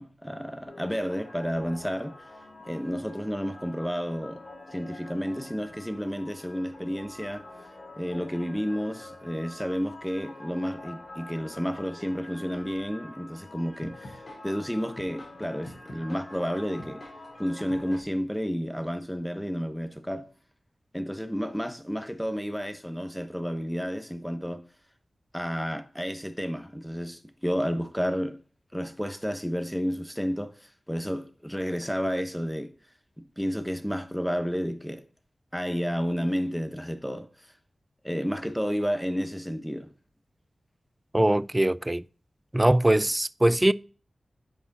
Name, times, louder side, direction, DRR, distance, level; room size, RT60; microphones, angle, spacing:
voice 1, 0.0-2.2 2.6-4.4 4.7-7.5 8.0-17.0 17.4-20.3 20.9-24.6 25.3-28.4 28.7-32.7 33.2-35.0 35.5-37.3 38.0-39.9, equal, 5° left, 1.0 m, -31 dB
sound 1, 0.6-18.0, left 2 dB, 55° left, 4.5 m, -46 dB
voice 2, 41.1-42.0 42.5-43.7, right 1 dB, 20° right, 0.3 m, -22 dB
8.0 x 4.8 x 4.0 m
cardioid pair, 55°, 0 cm